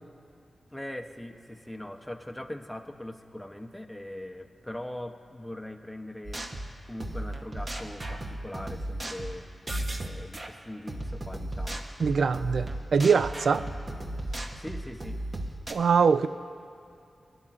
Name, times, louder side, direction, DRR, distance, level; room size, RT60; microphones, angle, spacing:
voice 1, 0.7-6.5 6.8-9.5 10.0-11.8 14.5-15.2, left 1 dB, 5° left, 5 dB, 0.7 m, -41 dB
sound 1, 6.2-10.5 10.9-15.7, right 1 dB, 40° right, 0.9 m, -36 dB
voice 2, 12.0-13.7 15.7-16.3, right 5 dB, 80° right, 13 dB, 0.3 m, -23 dB
19.5 x 11.0 x 2.5 m, 2.5 s
cardioid pair, 65°, 0 cm